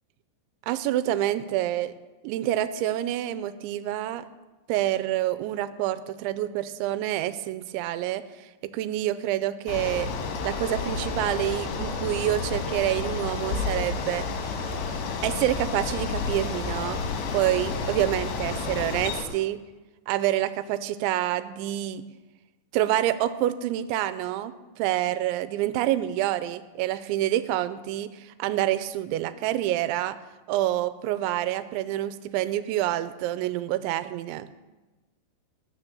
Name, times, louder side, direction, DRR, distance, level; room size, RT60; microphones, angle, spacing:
voice 1, 0.7-1.9 2.2-4.3 4.7-10.1 10.4-14.3 15.2-17.0 17.3-19.6 20.1-22.0 22.7-30.2 30.5-34.5, right 13 dB, 90° right, 13 dB, 3.0 m, -27 dB
Bicycle, 9.7-19.3, left 4 dB, 75° left, 3.6 m, -30 dB
19.5 x 6.5 x 6.9 m, 1.2 s
omnidirectional pair, 5.2 m